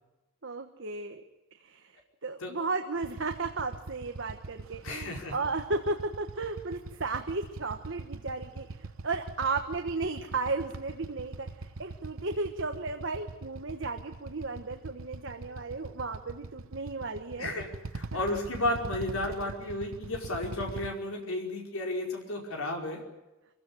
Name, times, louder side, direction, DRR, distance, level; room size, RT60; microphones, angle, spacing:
voice 1, 0.4-1.2 1.6-2.0 2.2-17.6, right 3 dB, 60° right, 5 dB, 1.3 m, -34 dB
Motorcycle / Idling, 3.0-20.9, right 3 dB, 75° right, 1.0 m, -43 dB
voice 2, 4.8-5.4 17.4-17.7 17.9-23.0, left 1 dB, 85° left, 1 dB, 5.0 m, -33 dB
24.5 x 16.0 x 9.9 m, 1.0 s
head